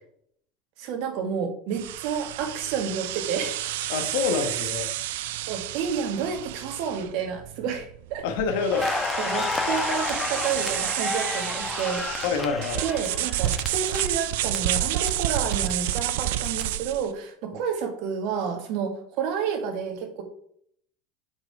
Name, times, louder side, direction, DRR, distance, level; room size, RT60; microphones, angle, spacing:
voice 1, 0.8-3.6 4.5-4.6 5.5-8.2 8.8-12.1 12.8-20.2, right 6 dB, 60° right, 5 dB, 1.8 m, -30 dB
sound 1, 1.7-17.1, right 13 dB, 80° right, 0.5 m, -30 dB
voice 2, 3.9-4.9 8.2-8.9 12.2-12.8, left 5 dB, 70° left, 5 dB, 1.3 m, -26 dB
Crackle, 8.7-14.6 14.8-16.6, left 3 dB, 15° left, 1.0 m, -31 dB
7.5 x 4.8 x 4.7 m, 0.67 s
supercardioid pair, 125°, 0 cm